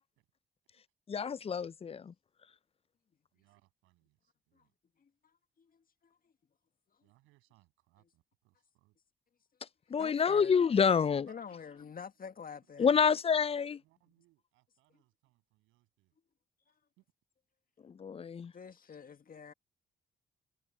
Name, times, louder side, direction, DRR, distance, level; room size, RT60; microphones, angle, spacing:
voice 1, 1.1-2.1 9.9-11.3 12.8-13.8 18.0-18.5, left 6 dB, 30° left, 0.5 m, -28 dB
voice 2, 3.3-4.7 7.0-9.0 11.3-12.1 12.5-13.2 13.5-16.2 17.0-17.1, right 20 dB, 75° right, 7.8 m, -70 dB
voice 3, 5.6-6.2 10.0-10.6 11.2-12.9 18.5-19.5, left 6 dB, 45° left, 2.1 m, -47 dB
hypercardioid pair, 45°, 21 cm